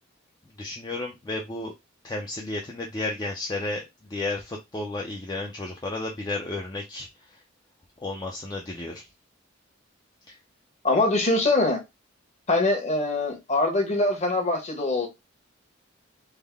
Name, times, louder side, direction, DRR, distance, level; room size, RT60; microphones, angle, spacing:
voice 1, 0.6-1.7 2.0-7.1 8.0-9.1 10.3-10.4, left 2 dB, 20° left, 0.4 m, -32 dB
voice 2, 10.8-11.8 12.5-15.1, left 2 dB, 35° left, 1.0 m, -23 dB
3.4 x 2.1 x 3.4 m
head